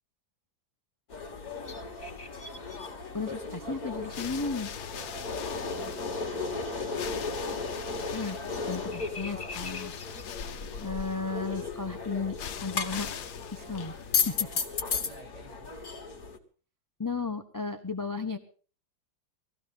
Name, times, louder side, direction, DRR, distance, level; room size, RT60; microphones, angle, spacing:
sound 1, 1.1-16.4, left 4 dB, 50° left, 2.6 m, -35 dB
sound 2, 1.5-10.2, left 3 dB, 30° left, 2.8 m, -48 dB
voice 1, 3.1-4.7 8.1-8.4 8.7-10.0 10.8-12.4 12.6-13.1 13.5-14.5 17.0-18.4, left 4 dB, 15° left, 7 dB, 0.8 m, -34 dB
sound 3, 3.9-14.6, left 9 dB, 75° left, 1.7 m, -43 dB
voice 2, 4.9-5.3 8.8-9.2 15.0-15.7, right 2 dB, 35° right, -1 dB, 7.2 m, -53 dB
20.5 x 15.5 x 4.0 m, 0.40 s
omnidirectional pair, 2.1 m